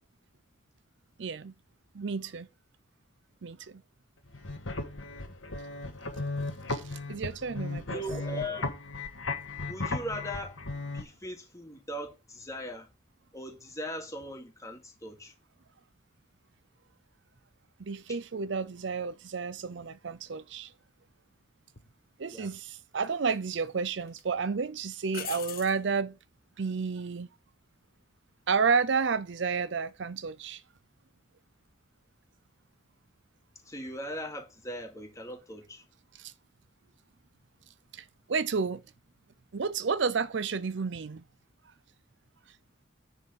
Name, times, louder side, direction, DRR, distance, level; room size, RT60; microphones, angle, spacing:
voice 1, 1.2-1.5 1.9-2.5 3.4-3.8 6.7-8.0 17.8-20.7 22.2-26.2 26.6-27.3 28.5-30.6 36.2-36.3 37.9-38.8 39.5-41.2, right 5 dB, 65° right, 0.5 m, -31 dB
sound 1, 4.3-11.0, left 3 dB, 85° left, 1.6 m, -36 dB
voice 2, 7.9-8.8 9.7-12.9 13.3-15.3 22.3-22.5 33.7-35.8, equal, 15° left, 2.4 m, -39 dB
sound 2, 21.8-21.9 23.0-23.7 24.1-24.2 25.1-25.8 28.9-29.3, left 10 dB, 50° left, 1.0 m, -42 dB
10.0 x 4.1 x 7.2 m
head